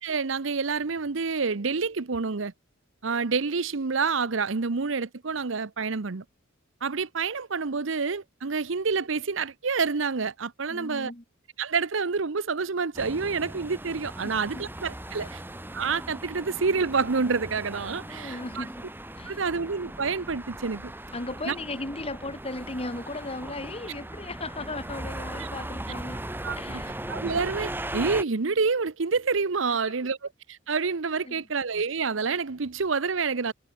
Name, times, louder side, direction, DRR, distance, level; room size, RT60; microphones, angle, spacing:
voice 1, 0.0-2.5 3.0-6.2 6.8-11.1 11.6-15.4 15.7-18.7 19.3-20.9 21.5-21.6 25.4-25.5 26.4-26.8 27.1-33.5, right 4 dB, 70° right, 0.8 m, -28 dB
voice 2, 10.7-11.2 14.2-14.7 15.2-15.3 17.9-18.8 19.2-19.4 21.1-26.2 26.5-27.0 29.7-29.8 31.2-31.4, left 2 dB, 30° left, 3.1 m, -37 dB
sound 1, 12.9-28.2, right 1 dB, 10° right, 3.0 m, -38 dB
head